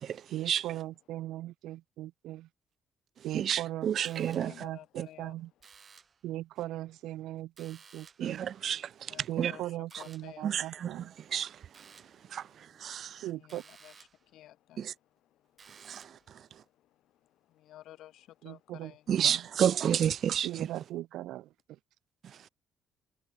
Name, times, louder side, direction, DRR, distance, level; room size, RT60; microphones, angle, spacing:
voice 1, 0.3-2.5 3.2-5.5 6.2-8.5 9.3-11.1 13.2-13.6 18.4-19.5 20.4-21.8, right 15 dB, 90° right, 3.8 m, -39 dB
voice 2, 3.3-4.5 8.2-8.8 9.4-9.5 10.4-11.0 11.3-11.5 12.3-12.4 12.8-13.2 14.8-14.9 15.9-16.0 19.1-20.5, right 9 dB, 45° right, 0.5 m, -29 dB
sound 1, 4.0-4.7 5.6-6.3 7.6-8.4 9.9-10.4 11.7-12.3 13.5-14.3 15.6-16.3, right 6 dB, 30° right, 6.1 m, -56 dB
voice 3, 4.4-5.3 9.1-10.6 13.3-14.1 14.3-14.9 17.5-19.0, left 13 dB, 75° left, 7.6 m, -52 dB
cardioid pair, 165°, 0 cm